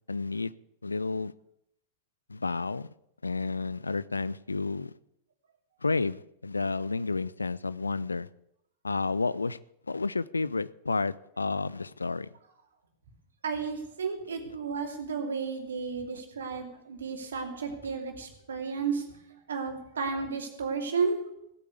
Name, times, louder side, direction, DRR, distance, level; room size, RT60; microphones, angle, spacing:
voice 1, 0.1-0.5 0.8-1.3 2.3-2.9 3.2-4.9 5.8-8.3 8.8-9.6 9.9-12.3, left 3 dB, 80° left, 0.5 m, -31 dB
voice 2, 13.4-19.0 19.5-21.2, right 5 dB, 70° right, 2.7 m, -32 dB
16.5 x 8.4 x 8.2 m
figure-of-eight pair, 90°, 0 cm